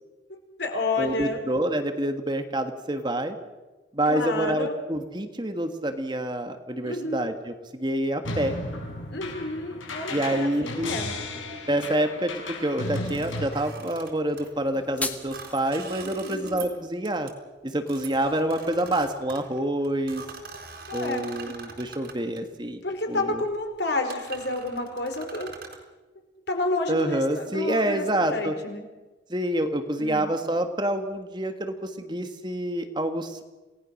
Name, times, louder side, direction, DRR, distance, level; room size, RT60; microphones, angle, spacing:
voice 1, 0.3-1.4 4.1-4.7 6.8-7.3 9.1-11.1 16.0-16.6 20.9-21.3 22.8-25.5 26.5-28.8 30.0-30.3, left 2 dB, 60° left, 4 dB, 4.3 m, -30 dB
voice 2, 1.0-3.4 3.9-8.5 10.1-11.0 11.7-12.3 12.6-17.3 17.6-20.2 20.9-22.8 23.1-23.4 26.9-28.5 29.3-33.4, right 1 dB, 25° right, 7 dB, 1.4 m, -27 dB
sound 1, 8.2-13.4, left 2 dB, 85° left, 6.7 m, -34 dB
sound 2, 13.0-14.5 15.1-16.8 17.0-17.3 17.9-22.4 23.2-23.4 23.8-23.9 24.1-25.8, right 5 dB, 55° right, 4.1 m, -43 dB
sound 3, 14.5-15.5, left 2 dB, 10° left, 1.5 m, -34 dB
28.0 x 18.5 x 6.4 m, 1.2 s
head